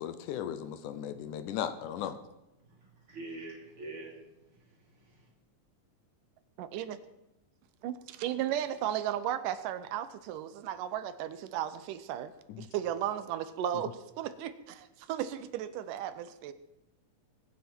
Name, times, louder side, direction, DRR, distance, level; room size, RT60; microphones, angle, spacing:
voice 1, 0.0-2.2 12.5-12.7, left 9 dB, 75° left, 11 dB, 2.2 m, -36 dB
voice 2, 2.6-5.3, right 2 dB, 40° right, -1 dB, 3.7 m, -46 dB
voice 3, 6.6-7.0 7.8-16.5, right 11 dB, 85° right, 12 dB, 2.3 m, -35 dB
21.5 x 9.5 x 4.4 m, 0.94 s
omnidirectional pair, 3.7 m